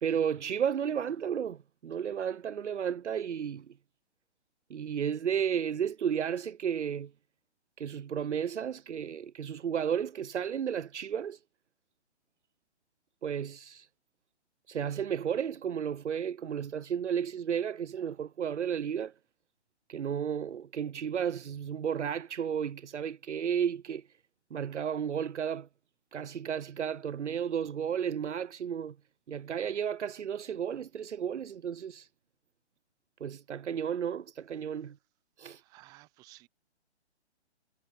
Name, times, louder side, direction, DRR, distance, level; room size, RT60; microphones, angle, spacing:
voice 1, 0.0-3.7 4.7-7.1 7.8-11.4 13.2-13.9 14.7-19.1 19.9-24.1 24.5-25.7 26.1-29.0 29.3-32.1 33.2-35.0 35.4-35.6, right 8 dB, 85° right, 0.8 m, -33 dB
voice 2, 35.5-36.5, right 20 dB, 10° right, 0.5 m, -55 dB
hypercardioid pair, 140°, 34 cm